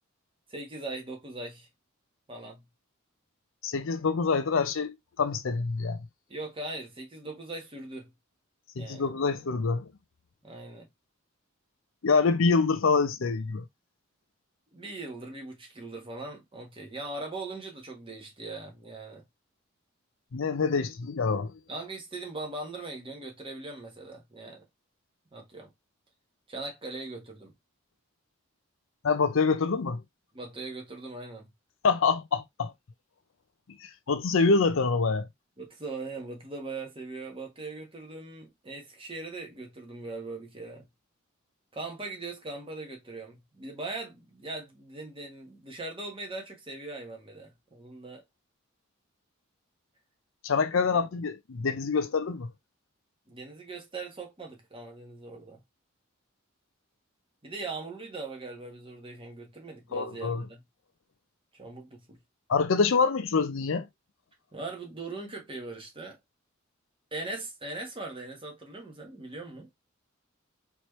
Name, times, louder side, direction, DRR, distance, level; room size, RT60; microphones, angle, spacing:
voice 1, 0.5-1.7 2.3-2.6 6.3-8.1 8.8-9.1 10.4-10.9 14.7-19.2 21.7-24.7 25.3-25.7 26.5-27.5 30.3-31.5 35.6-40.8 41.7-48.2 50.9-51.0 53.3-55.6 57.4-60.6 61.5-62.2 64.5-66.2 67.1-69.7, right 3 dB, 25° right, 1.4 m, -40 dB
voice 2, 3.6-6.0 8.8-9.9 12.0-13.7 20.3-21.5 29.0-30.0 31.8-32.7 33.8-35.3 50.4-52.5 59.9-60.4 62.5-63.9, left 4 dB, 65° left, 0.5 m, -26 dB
4.4 x 3.1 x 3.1 m
head